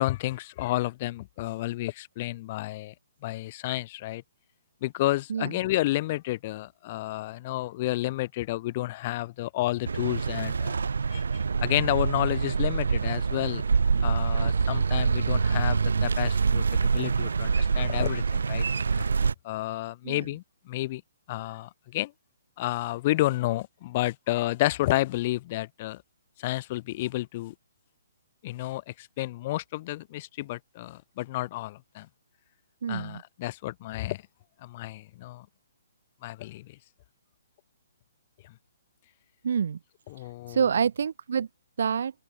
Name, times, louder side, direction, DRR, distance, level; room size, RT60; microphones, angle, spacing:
voice 1, 0.0-2.9 3.2-4.2 4.8-10.8 11.1-11.2 11.6-13.6 14.0-16.6 16.9-18.6 19.4-20.4 20.7-21.0 21.3-22.1 22.6-26.0 26.4-27.5 28.4-32.1 32.9-34.2 34.6-35.4 36.2-36.7 40.1-40.6, left 17 dB, 30° left, 6.4 m, -30 dB
sound 1, 9.9-19.3, right 5 dB, 90° right, 3.4 m, -25 dB
voice 2, 32.8-33.2 39.4-39.8 40.5-41.5 41.8-42.1, right 7 dB, 60° right, 5.9 m, -27 dB
open air
hypercardioid pair, 165°, 0 cm